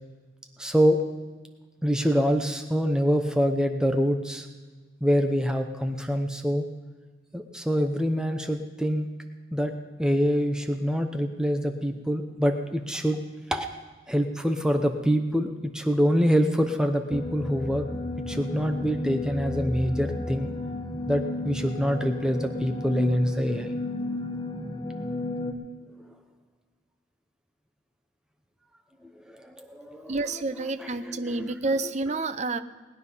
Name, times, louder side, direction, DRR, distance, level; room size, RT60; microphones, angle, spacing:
voice 1, 0.6-1.0 1.8-4.5 5.0-6.6 7.3-9.1 9.5-9.7 10.0-13.2 13.5-13.7 14.1-17.9 18.3-20.5 21.1-23.7 29.0-30.2, equal, 5° right, 5 dB, 0.8 m, -25 dB
sound 1, 17.1-25.5, left 2 dB, 20° left, 1.1 m, -33 dB
voice 2, 30.1-32.6, right 3 dB, 35° right, 10 dB, 0.6 m, -29 dB
19.5 x 10.0 x 5.6 m, 1.3 s
head